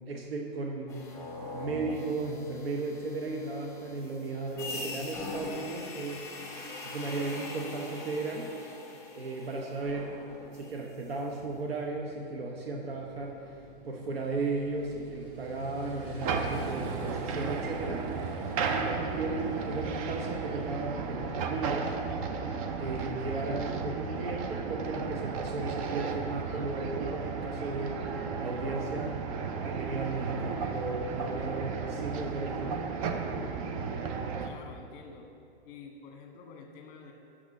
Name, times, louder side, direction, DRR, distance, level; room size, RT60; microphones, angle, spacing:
voice 1, 0.1-1.1 1.5-6.2 6.8-8.5 9.2-10.2 10.5-13.6 13.8-18.1 18.7-22.3 22.8-29.2 29.6-32.8, right 3 dB, 80° right, 0 dB, 0.9 m, -35 dB
sound 1, 0.9-11.0, left 2 dB, 10° left, 1.5 m, -42 dB
Motorcycle, 10.2-25.9, right 1 dB, 60° right, 1.6 m, -47 dB
sound 2, 16.2-34.5, right 5 dB, 35° right, 0.5 m, -34 dB
voice 2, 34.4-35.3 35.6-37.1, left 5 dB, 30° left, 3 dB, 1.1 m, -48 dB
6.3 x 6.2 x 5.2 m, 2.5 s
hypercardioid pair, 130°, 29 cm